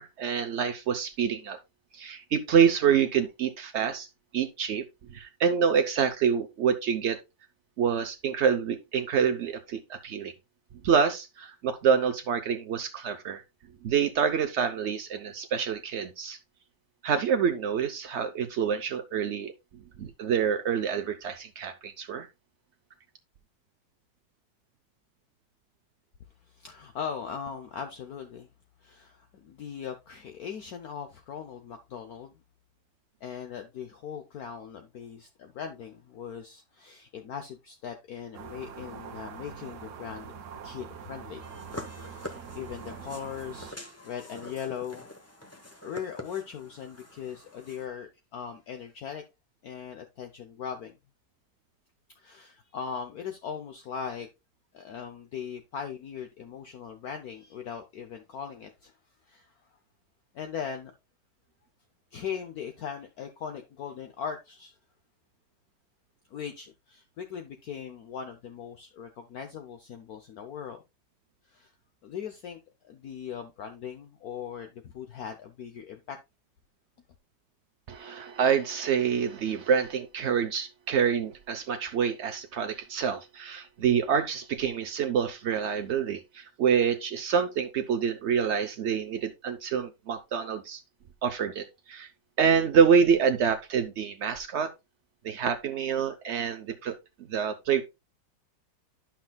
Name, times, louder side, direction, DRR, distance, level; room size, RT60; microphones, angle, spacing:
voice 1, 0.0-1.6 1.9-4.1 4.3-4.8 5.1-7.2 7.8-10.3 10.8-13.4 13.8-16.4 17.0-19.5 20.0-22.3 77.9-90.8 91.2-92.1 92.4-94.7 95.2-97.0 97.3-97.8, right 7 dB, 75° right, 0.6 m, -26 dB
voice 2, 26.5-28.5 28.8-32.3 33.2-40.3 40.6-41.5 41.9-45.1 45.8-49.2 49.6-51.0 52.2-54.3 54.7-58.9 59.3-59.5 60.3-60.9 62.1-64.8 66.3-70.8 71.5-71.7 72.0-76.2, left 7 dB, 65° left, 1.1 m, -39 dB
sound 1, 38.3-43.7, right 6 dB, 55° right, 1.0 m, -44 dB
sound 2, 41.4-47.9, left 1 dB, 15° left, 0.5 m, -45 dB
11.5 x 5.9 x 2.2 m
omnidirectional pair, 2.0 m